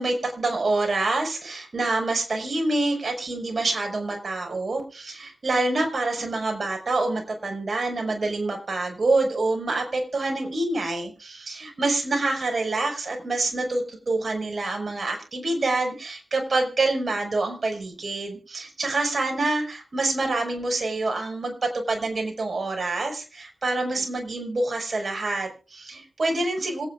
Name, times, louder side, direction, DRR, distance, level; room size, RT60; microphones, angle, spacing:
voice 1, 0.0-26.9, right 2 dB, 55° right, 3 dB, 5.8 m, -26 dB
26.5 x 9.8 x 2.5 m, 0.35 s
cardioid pair, 50°, 0 cm